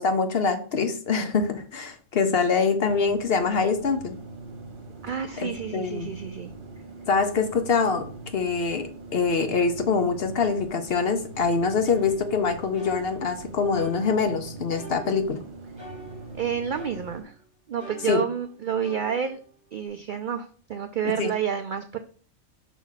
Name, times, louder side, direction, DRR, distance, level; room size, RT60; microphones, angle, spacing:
voice 1, 0.0-4.1 5.4-6.1 7.1-8.0 8.3-15.4 18.0-18.2 21.2-21.3, left 5 dB, 55° left, 7 dB, 0.8 m, -24 dB
sound 1, 2.8-17.2, right 2 dB, 40° right, 1.3 m, -42 dB
voice 2, 5.0-6.5 16.4-17.3 17.7-19.4 19.7-22.0, right 8 dB, 75° right, 7 dB, 0.4 m, -29 dB
sound 2, 11.9-13.4 13.7-15.5 15.8-17.4 17.8-19.9, right 4 dB, 10° right, 2.9 m, -46 dB
5.9 x 3.0 x 5.6 m, 0.43 s
omnidirectional pair, 1.4 m